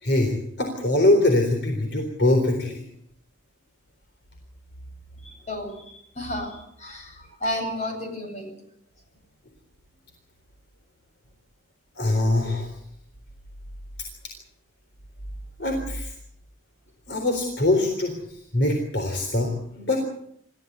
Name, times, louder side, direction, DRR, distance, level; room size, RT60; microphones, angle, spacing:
voice 1, 0.0-2.8 12.0-12.7 15.6-16.1 17.1-18.1 18.5-20.0, left 2 dB, 55° left, 3 dB, 3.9 m, -23 dB
voice 2, 6.2-7.1 7.4-8.5, left 1 dB, 35° left, 3 dB, 8.0 m, -31 dB
28.0 x 15.0 x 8.3 m, 0.71 s
head